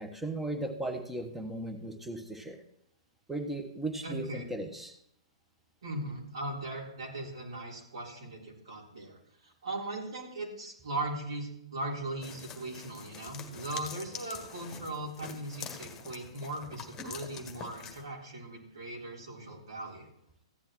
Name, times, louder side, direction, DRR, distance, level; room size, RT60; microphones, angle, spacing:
voice 1, 0.0-2.6 3.3-4.9, right 1 dB, 5° right, 6 dB, 1.2 m, -36 dB
voice 2, 4.0-4.4 5.8-20.1, right 2 dB, 65° right, -2 dB, 3.9 m, -39 dB
sound 1, 12.2-18.0, left 6 dB, 20° left, 1.5 m, -45 dB
15.0 x 10.5 x 3.1 m, 0.77 s
figure-of-eight pair, 115°, 3 cm